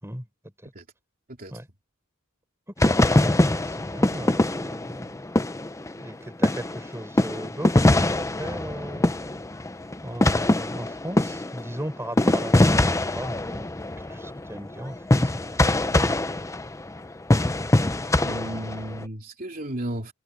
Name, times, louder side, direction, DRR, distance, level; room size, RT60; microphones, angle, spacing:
sound 1, 2.8-6.1 6.4-19.0, left 1 dB, 15° left, 0.7 m, -23 dB
voice 1, 2.8-5.3 6.0-9.1 10.0-13.8 14.1-16.1 16.4-16.5, right 1 dB, 10° right, 5.0 m, -37 dB
voice 2, 18.2-20.1, right 1 dB, 40° right, 3.0 m, -33 dB
head